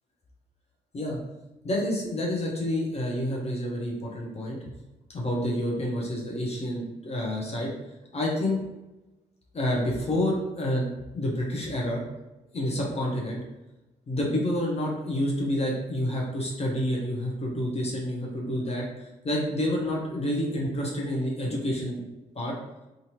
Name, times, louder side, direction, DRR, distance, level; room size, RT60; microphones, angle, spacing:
voice 1, 1.6-4.6 5.1-7.7 8.1-8.6 9.5-12.0 12.5-13.4 14.1-22.0 22.3-22.5, left 1 dB, 30° left, -2 dB, 0.7 m, -28 dB
2.7 x 2.5 x 2.8 m, 1.0 s
figure-of-eight pair, 40°, 20 cm